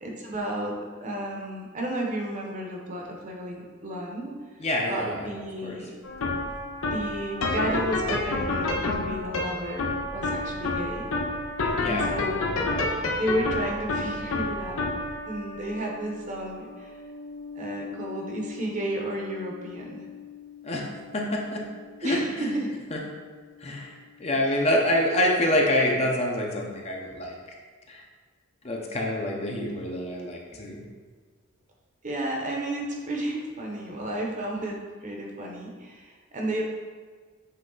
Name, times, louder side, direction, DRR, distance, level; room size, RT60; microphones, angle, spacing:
voice 1, 0.0-4.4 4.9-6.0 6.4-6.5 6.9-9.9 10.1-11.1 11.8-12.5 13.2-14.9 15.3-17.0 17.6-20.1 22.0-22.7 32.0-36.6, right 1 dB, 35° right, 0 dB, 0.8 m, -32 dB
voice 2, 4.6-5.3 5.6-5.8 11.8-12.1 20.6-20.8 21.1-21.6 22.0-22.6 22.9-23.0 23.6-27.5 27.9-28.0 28.6-30.8, left 1 dB, 30° left, 0 dB, 0.7 m, -26 dB
sound 1, 6.0-23.2, left 2 dB, 80° left, 0.6 m, -31 dB
7.5 x 3.2 x 3.9 m, 1.5 s
head